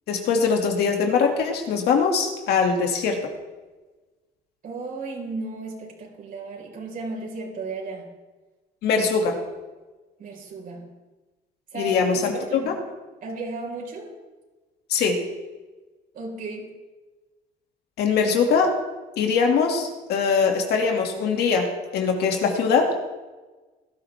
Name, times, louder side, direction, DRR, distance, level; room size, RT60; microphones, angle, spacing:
voice 1, 0.1-3.2 8.8-9.4 11.7-12.8 14.9-15.2 18.0-18.7 19.2-23.0, left 5 dB, 70° left, 2 dB, 2.4 m, -22 dB
voice 2, 4.6-8.1 10.2-10.9 11.7-12.0 12.3-12.8 13.2-14.1 16.1-16.7, right 3 dB, 55° right, -1 dB, 4.8 m, -34 dB
18.5 x 12.5 x 3.6 m, 1.2 s
cardioid pair, 110°, 17 cm